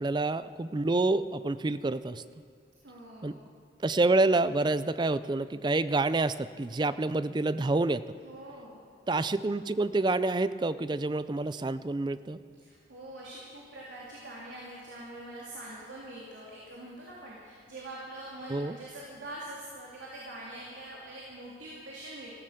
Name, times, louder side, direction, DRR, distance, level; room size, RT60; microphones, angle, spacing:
voice 1, 0.0-2.2 3.2-3.3 3.8-8.0 9.1-12.4 18.5-18.8, right 2 dB, 25° right, 14 dB, 0.4 m, -28 dB
voice 2, 2.8-3.4 8.2-8.8 12.6-22.3, right 1 dB, 80° right, -5 dB, 3.1 m, -44 dB
14.5 x 14.5 x 6.7 m, 2.2 s
head